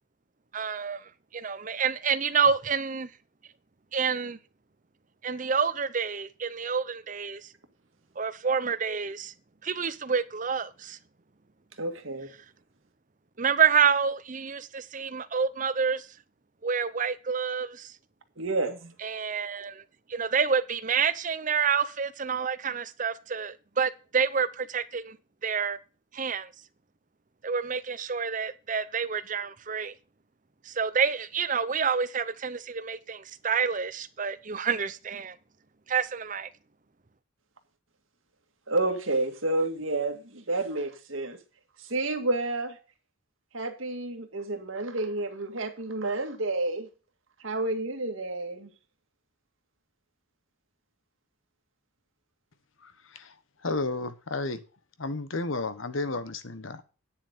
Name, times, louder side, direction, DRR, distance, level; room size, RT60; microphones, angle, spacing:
voice 1, 0.5-3.1 3.9-4.4 5.2-7.5 8.2-9.3 9.6-11.0 13.4-16.1 16.6-17.9 19.0-19.8 20.1-25.2 25.4-25.8 26.1-26.5 27.4-29.9 30.7-35.4 35.9-36.5, right 6 dB, 40° right, 0.7 m, -28 dB
voice 2, 11.8-12.3 18.4-18.9 38.7-41.4 41.8-42.8 43.5-46.9 47.4-48.7, right 2 dB, 80° right, 2.0 m, -30 dB
voice 3, 52.8-53.3 53.6-54.6 55.0-56.8, left 3 dB, 75° left, 1.2 m, -32 dB
9.7 x 7.1 x 5.2 m
head